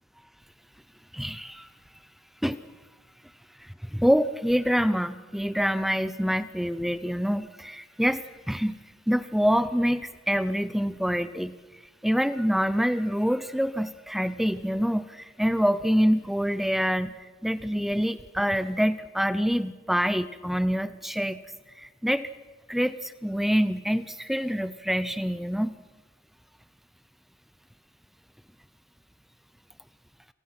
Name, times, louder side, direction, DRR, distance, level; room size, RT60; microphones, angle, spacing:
voice 1, 1.1-1.7 2.4-2.6 3.6-8.8 9.1-11.6 12.0-21.4 21.8-22.3 22.7-25.7, equal, ahead, 14 dB, 0.7 m, -26 dB
29.0 x 25.0 x 6.0 m, 1.3 s
head